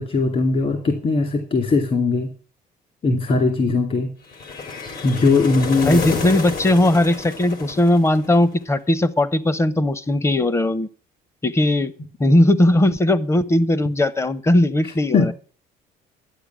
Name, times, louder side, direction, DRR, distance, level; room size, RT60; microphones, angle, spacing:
voice 1, 0.0-2.3 3.0-4.1 5.0-6.1 14.8-15.3, left 3 dB, 45° left, 5 dB, 2.7 m, -20 dB
sound 1, 4.3-8.5, left 4 dB, 65° left, 3.5 m, -30 dB
voice 2, 5.8-10.9 11.4-11.9 12.2-15.3, left 1 dB, 15° left, 18 dB, 0.9 m, -18 dB
12.0 x 8.9 x 6.1 m, 0.40 s
cardioid pair, 110°, 17 cm